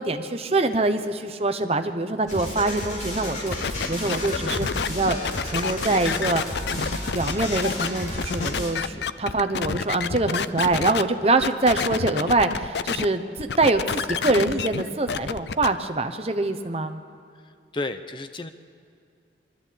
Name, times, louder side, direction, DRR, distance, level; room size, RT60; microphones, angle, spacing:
voice 1, 0.0-5.2 5.4-6.4 6.7-17.0, right 2 dB, 35° right, 8 dB, 1.0 m, -24 dB
sound 1, 2.3-8.7, left 1 dB, 45° left, 4.1 m, -32 dB
sound 2, 3.5-11.0 11.4-13.1 13.4-15.7, left 6 dB, 75° left, 0.5 m, -28 dB
voice 2, 17.3-18.5, left 2 dB, 25° left, 9 dB, 0.7 m, -33 dB
22.5 x 13.5 x 8.6 m, 2.4 s
head